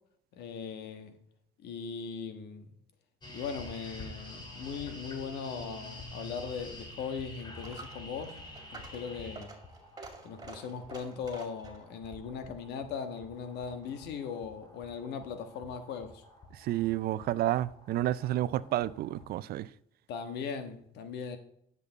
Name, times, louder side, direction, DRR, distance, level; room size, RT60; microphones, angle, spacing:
voice 1, 0.3-1.2 1.6-2.7 3.3-8.4 8.7-9.6 10.2-16.2 20.1-21.4, left 6 dB, 80° left, 1.4 m, -39 dB
sound 1, 3.2-19.3, left 1 dB, 25° left, 2.4 m, -49 dB
Coin (dropping), 6.6-13.9, right 3 dB, 20° right, 2.5 m, -51 dB
voice 2, 16.5-19.7, right 14 dB, 65° right, 0.5 m, -30 dB
10.0 x 6.9 x 4.1 m
cardioid pair, 110°, 17 cm